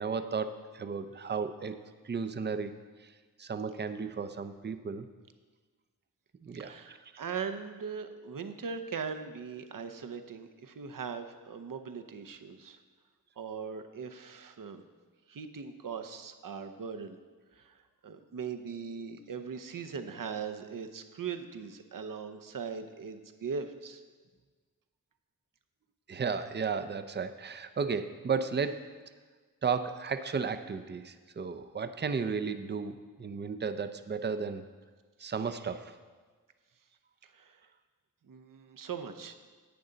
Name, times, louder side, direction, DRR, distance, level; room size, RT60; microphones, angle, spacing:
voice 1, 0.0-1.8 2.0-2.7 3.0-3.1 3.4-5.1 6.4-7.1 26.1-28.8 29.6-34.7 35.2-36.0, right 5 dB, 30° right, 10 dB, 0.5 m, -34 dB
voice 2, 6.6-12.8 13.4-14.8 15.3-17.2 17.6-17.8 18.0-24.0 35.2-35.3 37.3-37.6 38.3-39.3, right 6 dB, 65° right, 8 dB, 0.8 m, -40 dB
10.5 x 8.5 x 3.9 m, 1.4 s
cardioid pair, 65°, 35 cm